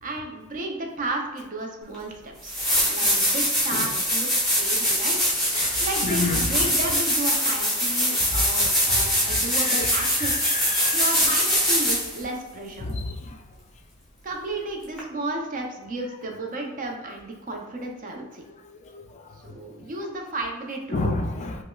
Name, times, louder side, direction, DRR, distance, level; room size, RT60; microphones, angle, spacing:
voice 1, 0.0-2.6 2.9-5.2 5.6-10.5 10.9-12.8 14.2-18.4 19.4-21.2, right 2 dB, 35° right, 2 dB, 0.5 m, -33 dB
sound 1, 1.9-2.0 2.4-12.2 15.0-15.1, equal, ahead, 0.8 m, -23 dB
voice 2, 5.6-6.7 9.5-9.7 10.2-11.0 12.8-13.2 20.9-21.6, left 3 dB, 30° left, 4 dB, 0.3 m, -29 dB
5.2 x 2.0 x 2.3 m, 1.1 s
head